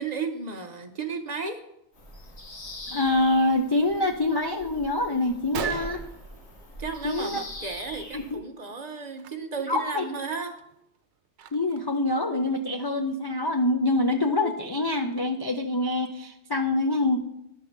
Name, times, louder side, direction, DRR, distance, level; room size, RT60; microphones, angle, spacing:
voice 1, 0.0-1.6 6.8-10.6, right 5 dB, 45° right, 7 dB, 0.6 m, -34 dB
Bird vocalization bird call bird song, 1.9-8.4, left 1 dB, 85° left, 1.7 m, -42 dB
voice 2, 2.9-6.0 7.0-7.4 8.1-8.4 9.7-10.0 11.5-17.2, left 2 dB, 40° left, 5 dB, 0.3 m, -25 dB
Gunshot gunfire, 5.5-7.2 7.5-8.3 9.1-9.3 9.8-9.9 10.4-12.0, right 8 dB, 85° right, 0.9 m, -39 dB
11.0 x 3.7 x 6.4 m, 0.82 s
omnidirectional pair, 1.1 m